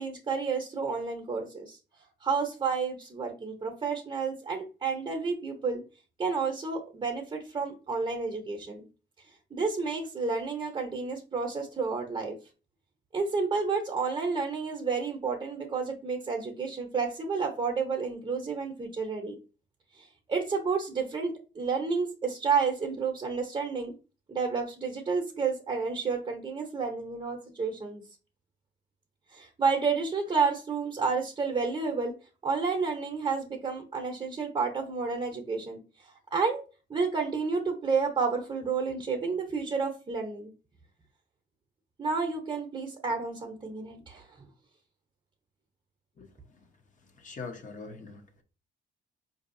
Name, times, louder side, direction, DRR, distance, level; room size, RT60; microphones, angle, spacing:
voice 1, 0.0-1.8 2.2-5.8 6.2-8.9 9.5-12.4 13.1-19.4 20.0-23.9 24.3-28.0 29.3-32.1 32.4-36.6 36.9-40.5 42.0-44.3, right 5 dB, 25° right, 0.8 m, -30 dB
voice 2, 47.2-48.4, left 4 dB, 40° left, 0.9 m, -42 dB
4.7 x 2.7 x 2.6 m
cardioid pair, 90°, 20 cm